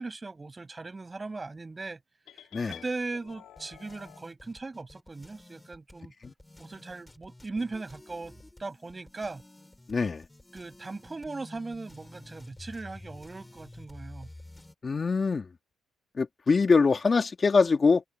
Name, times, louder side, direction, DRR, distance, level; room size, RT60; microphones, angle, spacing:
voice 1, 0.0-2.0 2.3-6.1 6.6-8.3 8.6-9.4 10.5-14.3, right 3 dB, 25° right, 7.2 m, -38 dB
sound 1, 2.3-4.3, left 11 dB, 80° left, 4.0 m, -50 dB
sound 2, 3.3-14.7, left 1 dB, 10° left, 6.8 m, -51 dB
voice 2, 9.9-10.3 14.8-15.5 16.2-18.0, left 4 dB, 35° left, 2.5 m, -23 dB
open air
cardioid pair, 90°, 0 cm